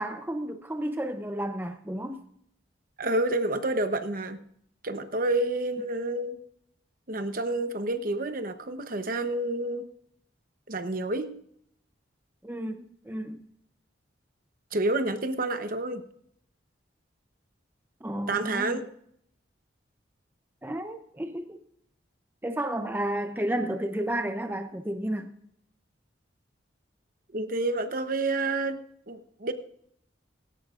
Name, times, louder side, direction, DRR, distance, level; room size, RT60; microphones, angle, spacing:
voice 1, 0.0-2.2 12.4-12.8 13.1-13.4 18.0-18.8 20.6-21.6 22.4-25.3, right 1 dB, 10° right, 0.6 m, -32 dB
voice 2, 3.0-4.4 4.8-6.4 7.1-9.9 10.7-11.3 14.7-16.0 18.3-18.9 27.3-28.8 29.1-29.5, right 2 dB, 50° right, 0.9 m, -29 dB
18.0 x 16.5 x 2.5 m
head